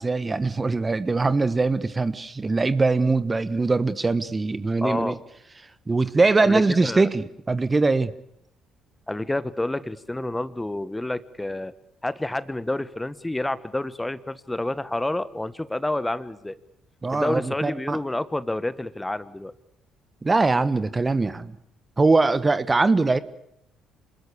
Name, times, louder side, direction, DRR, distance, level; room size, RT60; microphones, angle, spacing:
voice 1, 0.0-5.1 5.9-8.1 17.0-18.0 20.2-21.5 22.0-23.2, right 3 dB, 25° right, 15 dB, 1.2 m, -22 dB
voice 2, 4.8-5.2 6.4-7.1 9.1-11.7 12.0-16.5 17.1-19.5, left 1 dB, 10° left, 16 dB, 1.3 m, -29 dB
27.5 x 20.0 x 8.6 m, 0.76 s
hypercardioid pair, 50°, 0 cm